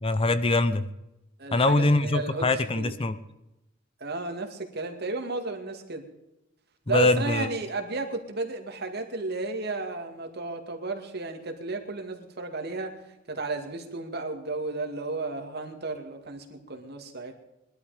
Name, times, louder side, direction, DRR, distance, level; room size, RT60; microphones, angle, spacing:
voice 1, 0.0-0.9 1.5-3.2 6.9-7.5, left 2 dB, 30° left, 12 dB, 0.8 m, -23 dB
voice 2, 1.4-2.9 4.0-6.0 6.9-12.9 13.3-17.4, right 3 dB, 55° right, 5 dB, 2.4 m, -33 dB
21.0 x 12.0 x 5.1 m, 0.92 s
head